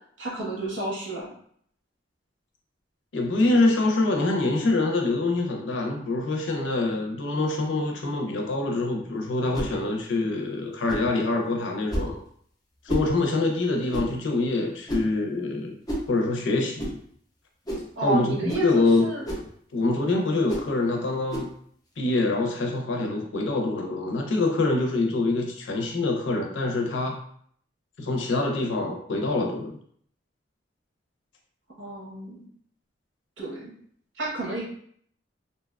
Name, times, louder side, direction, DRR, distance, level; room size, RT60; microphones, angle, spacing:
voice 1, 0.2-1.3 18.0-19.2 31.8-32.4 33.4-33.7 34.2-34.6, right 1 dB, 90° right, -4 dB, 1.0 m, -31 dB
voice 2, 3.1-12.2 12.8-15.8 16.1-17.0 18.0-19.1 19.7-21.5 22.0-27.2 28.0-29.7, left 2 dB, 80° left, 2 dB, 0.5 m, -25 dB
sound 1, 9.5-9.7 10.9-11.1 11.9-12.1 12.9-13.1 13.9-14.1 14.9-15.1 15.9-16.1 16.8-17.0 17.7-17.9 18.5-18.7 19.2-19.5 20.5-20.7 21.3-21.5, equal, 20° left, 0.5 m, -30 dB
2.7 x 2.2 x 2.2 m, 0.62 s
head